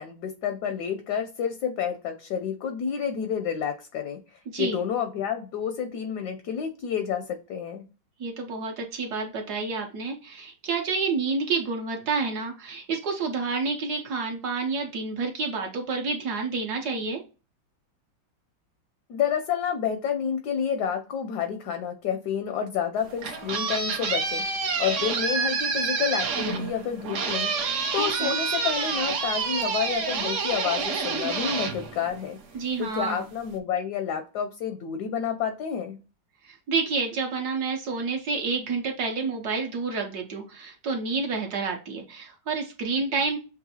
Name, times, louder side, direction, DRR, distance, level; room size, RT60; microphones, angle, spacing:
voice 1, 0.0-7.8 19.1-24.4 24.8-32.4 32.8-36.0, left 8 dB, 75° left, 7 dB, 0.9 m, -29 dB
voice 2, 8.2-17.2 28.0-28.4 32.5-33.2 36.4-43.4, right 4 dB, 65° right, 2 dB, 1.1 m, -29 dB
sound 1, 23.0-32.6, right 5 dB, 85° right, 0.6 m, -28 dB
6.6 x 2.5 x 2.7 m, 0.33 s
omnidirectional pair, 2.2 m